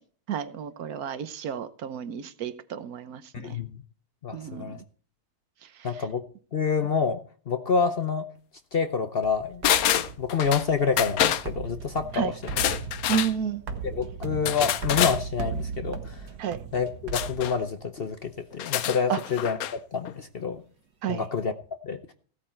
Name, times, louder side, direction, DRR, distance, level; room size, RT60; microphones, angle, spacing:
voice 1, 0.3-3.6 4.3-4.8 5.8-5.9 12.1-12.3 13.1-13.6 16.4-16.6 19.1-19.2 21.0-21.2, right 8 dB, 70° right, 13 dB, 1.3 m, -31 dB
voice 2, 3.3-3.8 4.2-4.8 5.8-6.3 6.5-7.2 7.5-8.3 8.7-9.6 10.2-12.3 13.8-16.3 16.7-20.6 21.1-21.5 21.8-22.1, left 5 dB, 50° left, 9 dB, 0.8 m, -28 dB
sound 1, 9.2-18.0, right 5 dB, 90° right, 1.8 m, -37 dB
sound 2, 9.6-10.7 11.0-11.5 12.4-13.3 14.5-15.2 17.1-17.5 18.5-19.8 20.1-20.2, left 11 dB, 70° left, 1.1 m, -26 dB
16.0 x 8.6 x 4.4 m, 0.44 s
omnidirectional pair, 1.7 m